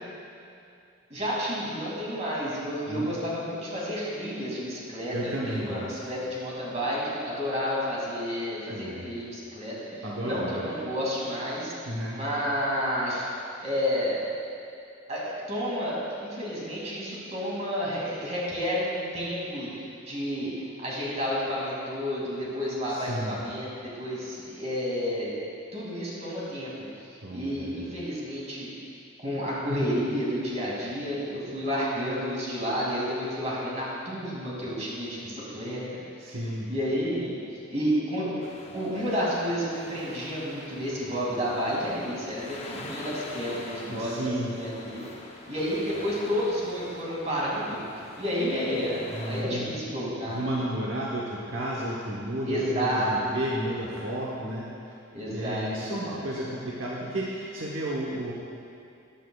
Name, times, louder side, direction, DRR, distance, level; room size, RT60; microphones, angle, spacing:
voice 1, 1.1-13.3 13.6-14.2 15.1-25.3 25.7-28.7 29.2-36.4 36.7-37.4 37.7-38.4 38.7-45.1 45.5-47.8 48.2-50.5 52.4-53.3 55.1-56.2, equal, 35° right, -6 dB, 2.4 m, -31 dB
voice 2, 5.1-6.0 8.7-9.1 10.0-10.6 11.8-12.2 22.9-23.4 27.2-27.9 36.2-36.7 43.9-44.5 49.1-49.7 50.3-54.7 55.3-58.3, right 1 dB, 70° right, -5 dB, 1.0 m, -32 dB
sound 1, 38.4-49.4, left 2 dB, 30° left, 0.8 m, -45 dB
14.5 x 9.1 x 2.3 m, 2.6 s
head